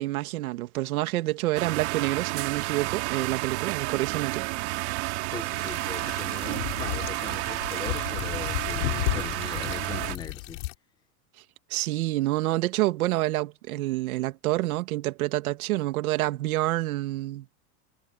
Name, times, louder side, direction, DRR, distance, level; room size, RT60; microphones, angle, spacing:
voice 1, 0.0-4.4 11.7-17.5, right 17 dB, 65° right, 2.0 m, -28 dB
sound 1, 1.5-10.1, right 24 dB, 45° right, 2.8 m, -31 dB
voice 2, 5.3-10.6, left 6 dB, 10° left, 1.3 m, -40 dB
sound 2, 5.5-10.7, left 25 dB, 50° left, 7.5 m, -33 dB
supercardioid pair, 170°, 46 cm